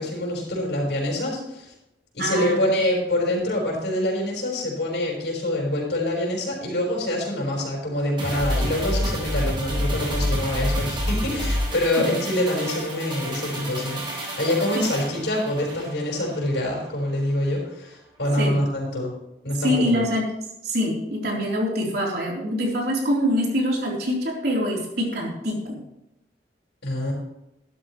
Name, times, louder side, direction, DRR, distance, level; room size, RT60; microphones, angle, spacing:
voice 1, 0.0-1.7 2.1-19.1 19.4-20.0 26.8-27.1, left 1 dB, 75° left, -3 dB, 4.9 m, -25 dB
voice 2, 2.2-2.7 12.0-12.1 14.8-14.9 18.4-18.6 19.6-20.3 20.6-25.8, equal, 65° right, -2 dB, 3.8 m, -25 dB
sound 1, 8.2-16.8 17.1-17.2, equal, 30° right, 4.1 m, -28 dB
13.5 x 12.0 x 3.2 m, 0.86 s
head